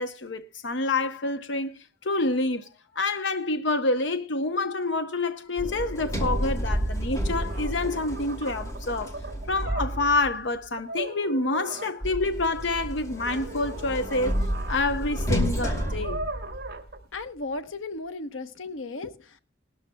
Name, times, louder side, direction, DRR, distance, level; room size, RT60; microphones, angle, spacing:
voice 1, 0.0-2.7 2.9-9.1 9.5-14.3 14.7-16.2, left 2 dB, 65° left, 0.8 m, -27 dB
Sliding door, 5.6-10.4 12.0-17.0, equal, 15° left, 2.6 m, -30 dB
sound 1, 7.2-7.3 7.5-10.2 10.8-12.0 13.2-17.0, right 2 dB, 55° right, 2.2 m, -39 dB
voice 2, 17.1-19.4, left 3 dB, 90° left, 1.0 m, -35 dB
19.5 x 13.0 x 2.2 m
head